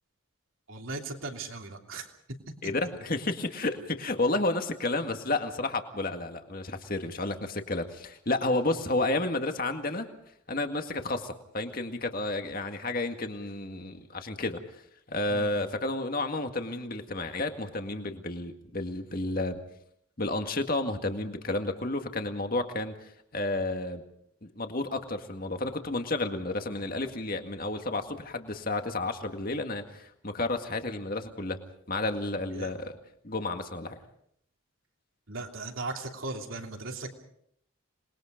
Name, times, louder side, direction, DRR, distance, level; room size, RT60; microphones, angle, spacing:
voice 1, 0.7-2.1 15.3-15.5 32.5-32.7 35.3-37.1, right 3 dB, 70° right, 3 dB, 3.1 m, -37 dB
voice 2, 2.6-10.1 10.5-14.8 15.1-19.6 20.2-24.0 24.4-31.6 31.9-32.9 33.2-34.0, left 2 dB, 45° left, 6 dB, 2.0 m, -31 dB
27.0 x 21.0 x 5.2 m, 0.70 s
head